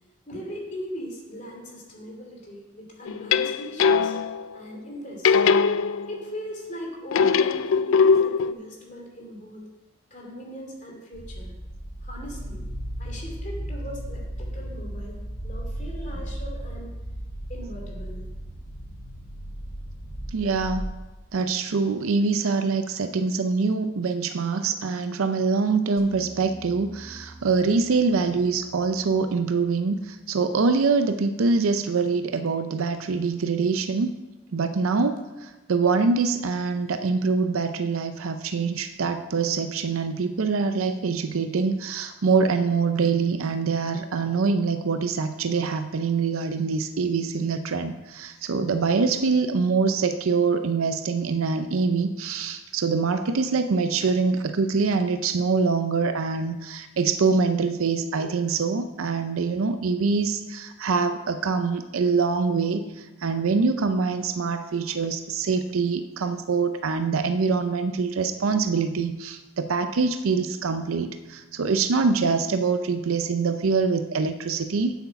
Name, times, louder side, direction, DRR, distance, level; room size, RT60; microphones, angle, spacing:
voice 1, 0.3-4.1 4.5-5.5 6.1-9.7 10.1-11.5 12.0-12.6 13.0-17.0 17.5-18.2 20.0-20.3, equal, 35° left, -1 dB, 2.6 m, -39 dB
sound 1, 3.1-4.5 5.2-6.4 7.1-8.5, left 5 dB, 75° left, 0.4 m, -21 dB
sound 2, 11.1-20.8, right 1 dB, 50° left, 3.0 m, -35 dB
voice 2, 20.3-20.9 21.3-34.1 34.5-74.9, right 4 dB, 85° right, 9 dB, 0.5 m, -24 dB
sound 3, 26.0-31.2, right 2 dB, 45° right, 1.3 m, -49 dB
8.1 x 8.0 x 5.8 m, 1.1 s
head